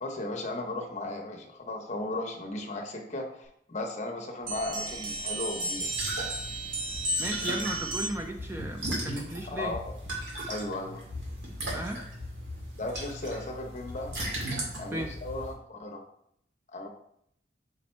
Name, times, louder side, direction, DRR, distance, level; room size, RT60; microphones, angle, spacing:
voice 1, 0.0-5.9 9.5-9.8 10.5-11.0 12.8-14.1 14.8-16.0 16.7-16.9, left 2 dB, 40° left, 3 dB, 0.9 m, -36 dB
sound 1, 4.5-8.4, right 1 dB, 50° right, 1.4 m, -33 dB
sound 2, 5.8-15.5, right 1 dB, 85° right, 2.1 m, -37 dB
voice 2, 7.2-9.8 11.7-12.0 14.9-15.1, right 1 dB, 15° right, 3 dB, 0.4 m, -35 dB
5.2 x 4.2 x 4.3 m, 0.72 s
head